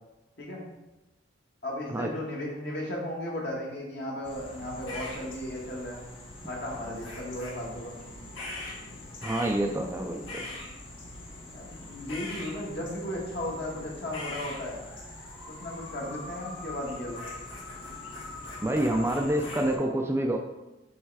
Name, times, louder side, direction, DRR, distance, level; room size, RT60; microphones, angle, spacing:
voice 1, 1.6-6.0 6.4-8.0 11.5-14.8 15.5-17.3, left 1 dB, 55° left, -3 dB, 1.6 m, -35 dB
sound 1, 4.2-19.8, left 2 dB, 80° left, 1.4 m, -42 dB
voice 2, 9.2-10.4 18.6-20.4, right 1 dB, 15° right, 3 dB, 0.3 m, -27 dB
6.6 x 3.2 x 4.7 m, 1.0 s
head